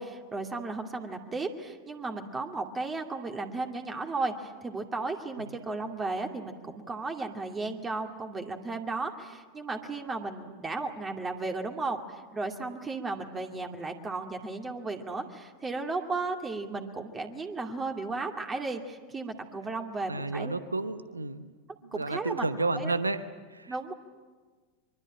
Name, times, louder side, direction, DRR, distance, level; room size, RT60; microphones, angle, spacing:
voice 1, 0.0-20.5 21.9-22.9 23.7-23.9, right 3 dB, 20° right, 4 dB, 2.4 m, -35 dB
voice 2, 20.1-21.5 21.9-23.2 23.5-23.7, right 3 dB, 85° right, 12 dB, 1.0 m, -31 dB
24.5 x 24.0 x 8.9 m, 1.4 s
figure-of-eight pair, 85°, 0 cm